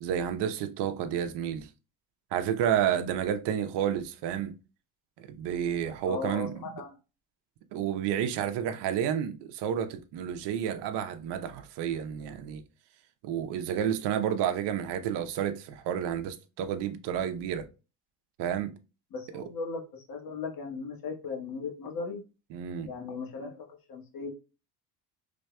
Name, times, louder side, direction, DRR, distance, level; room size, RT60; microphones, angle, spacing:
voice 1, 0.0-1.7 2.3-4.5 5.2-6.6 7.7-12.6 13.2-17.7 18.4-18.7 19.3-19.4 22.5-22.9, right 9 dB, 70° right, 0.8 m, -30 dB
voice 2, 6.0-6.9 19.1-22.2 22.8-24.3, left 4 dB, 55° left, 1.6 m, -37 dB
5.1 x 3.4 x 2.2 m
cardioid pair, 105°, 42 cm